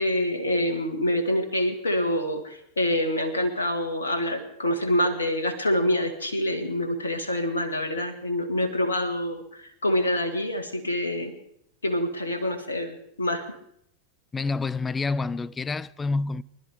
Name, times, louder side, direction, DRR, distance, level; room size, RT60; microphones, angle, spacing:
voice 1, 0.0-11.3 11.8-13.4, left 1 dB, 75° left, 1.7 m, -26 dB
voice 2, 14.3-16.4, left 3 dB, 15° left, 0.4 m, -28 dB
24.5 x 12.0 x 3.6 m
figure-of-eight pair, 90°, 0 cm